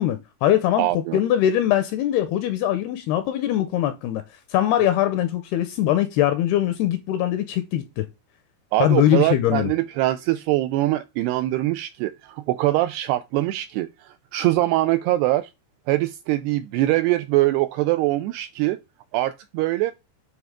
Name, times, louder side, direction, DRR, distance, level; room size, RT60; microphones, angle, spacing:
voice 1, 0.0-4.2 4.5-8.1 8.8-9.7, left 12 dB, 80° left, 2.4 m, -22 dB
voice 2, 0.8-1.2 8.7-15.5 15.9-18.8 19.1-19.9, right 17 dB, 85° right, 2.3 m, -23 dB
9.3 x 3.5 x 4.7 m
omnidirectional pair, 5.2 m